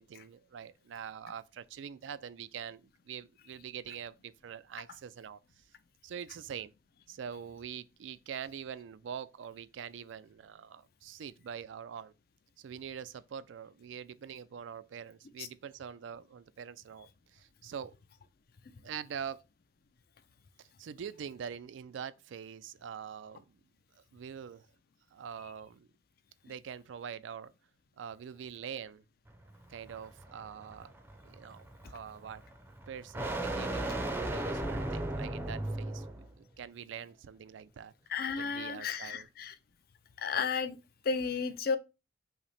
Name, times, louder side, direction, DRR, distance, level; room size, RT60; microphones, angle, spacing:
voice 1, 0.0-5.6 6.0-6.7 7.1-12.1 12.6-17.9 18.8-19.4 20.6-23.6 24.0-24.7 25.1-25.9 26.4-27.5 28.0-29.0 29.7-31.0 31.2-32.4 32.9-37.9 38.4-39.3, right 8 dB, 80° right, 0.3 m, -44 dB
sound 1, 29.3-36.3, right 1 dB, 10° right, 0.5 m, -37 dB
voice 2, 38.1-39.5 40.2-40.8 41.0-41.8, left 5 dB, 55° left, 0.5 m, -33 dB
5.8 x 2.1 x 4.1 m
head